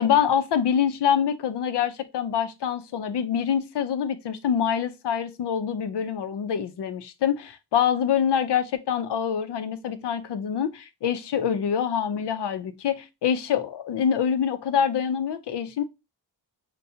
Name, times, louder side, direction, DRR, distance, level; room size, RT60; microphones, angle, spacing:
voice 1, 0.0-15.8, left 8 dB, 75° left, 0.6 m, -25 dB
5.5 x 2.3 x 2.7 m
wide cardioid pair, 130°, 41 cm